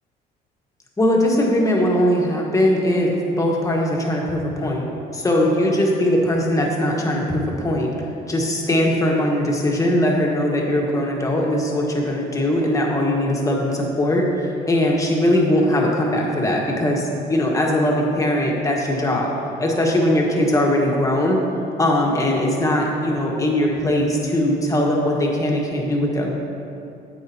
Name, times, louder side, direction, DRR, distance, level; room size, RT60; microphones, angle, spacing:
voice 1, 1.0-3.1 3.4-4.8 5.1-7.9 8.3-14.2 14.7-19.3 19.6-21.4 21.8-26.3, left 1 dB, 20° left, -1 dB, 1.3 m, -20 dB
9.7 x 8.2 x 2.8 m, 2.6 s
cardioid pair, 110°, 17 cm